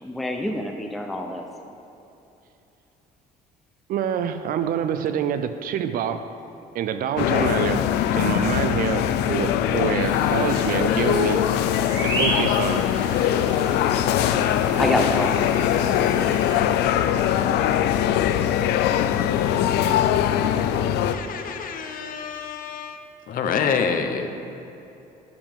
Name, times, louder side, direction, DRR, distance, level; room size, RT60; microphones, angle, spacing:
voice 1, 0.0-1.4 14.8-15.3, left 1 dB, ahead, 3 dB, 0.5 m, -26 dB
voice 2, 3.9-6.2 6.7-7.9 8.1-11.5 12.0-12.9, right 8 dB, 60° right, 10 dB, 0.4 m, -26 dB
sound 1, 7.2-21.1, left 10 dB, 80° left, 0.4 m, -22 dB
sound 2, 10.0-16.6, right 1 dB, 25° right, 1.8 m, -33 dB
voice 3, 21.1-23.0 23.3-24.3, left 6 dB, 55° left, 6 dB, 0.8 m, -27 dB
9.6 x 6.9 x 3.6 m, 3.0 s
cardioid pair, 110°, 17 cm